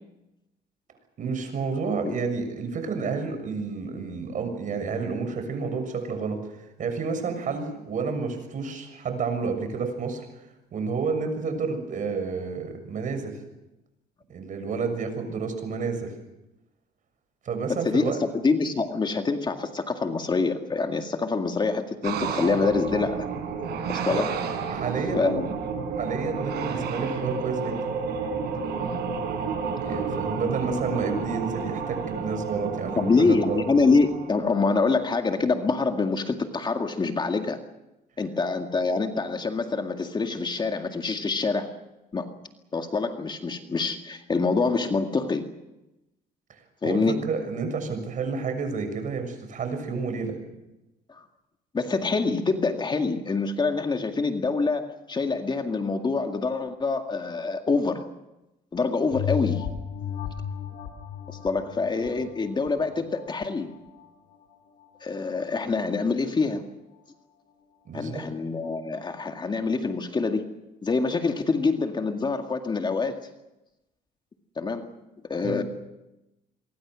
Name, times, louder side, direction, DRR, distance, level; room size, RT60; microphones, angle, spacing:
voice 1, 1.2-6.4 6.8-10.2 10.7-13.3 14.3-16.1 17.4-18.2 24.1-24.2 24.7-25.3 26.0-27.8 29.8-33.6 46.8-50.4 67.8-68.2 75.4-75.6, right 5 dB, 50° right, 7 dB, 6.8 m, -30 dB
voice 2, 17.7-23.3 23.9-24.4 25.1-25.5 28.5-28.6 33.0-37.6 38.2-41.7 42.1-42.3 42.7-45.4 46.8-47.2 51.1-51.2 51.7-58.0 58.7-59.7 61.3-63.7 65.0-66.7 67.9-70.5 70.8-73.2 74.6-74.9 75.3-75.6, left 4 dB, 25° left, 5 dB, 2.1 m, -25 dB
sound 1, 22.0-35.0, right 5 dB, 70° right, 5.8 m, -31 dB
sound 2, 59.1-64.0 64.5-64.6, left 9 dB, 80° left, 3.8 m, -34 dB
26.5 x 23.5 x 6.3 m, 0.95 s
cardioid pair, 110°, 17 cm